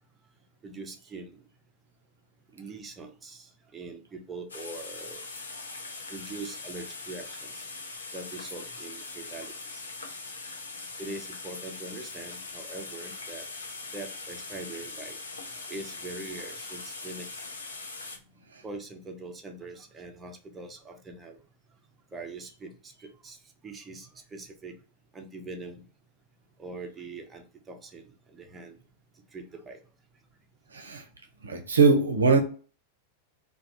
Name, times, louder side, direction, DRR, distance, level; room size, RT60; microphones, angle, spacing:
voice 1, 0.6-1.4 2.5-5.2 6.1-7.7 8.1-9.8 11.0-13.5 13.9-15.2 15.7-17.5 18.6-21.4 22.1-23.4 23.6-24.7 25.1-25.8 26.6-28.8 29.3-29.8, right 3 dB, 15° right, 3 dB, 0.5 m, -42 dB
sound 1, 4.5-18.2, left 3 dB, 75° left, 0.4 m, -41 dB
voice 2, 30.7-31.0 31.4-32.4, right 4 dB, 75° right, 5 dB, 0.5 m, -22 dB
2.3 x 2.2 x 2.6 m, 0.40 s
figure-of-eight pair, 90°, 0 cm